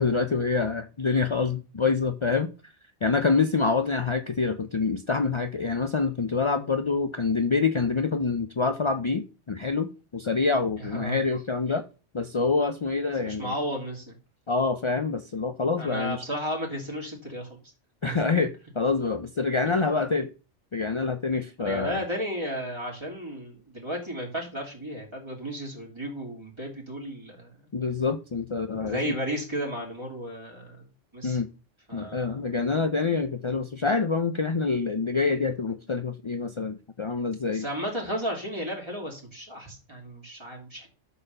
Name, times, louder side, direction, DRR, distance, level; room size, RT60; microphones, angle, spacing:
voice 1, 0.0-2.5 3.0-11.8 12.1-13.5 14.5-16.2 18.0-20.3 20.7-22.0 27.7-29.1 31.2-31.5 31.9-37.6, left 4 dB, 50° left, 0.3 m, -26 dB
voice 2, 10.8-11.2 13.2-14.2 15.8-17.6 18.0-18.4 19.7-19.8 21.6-27.5 28.8-30.9 31.1-31.4 31.9-32.6 37.5-40.9, equal, 20° right, 3.3 m, -34 dB
11.0 x 4.2 x 6.7 m
omnidirectional pair, 1.4 m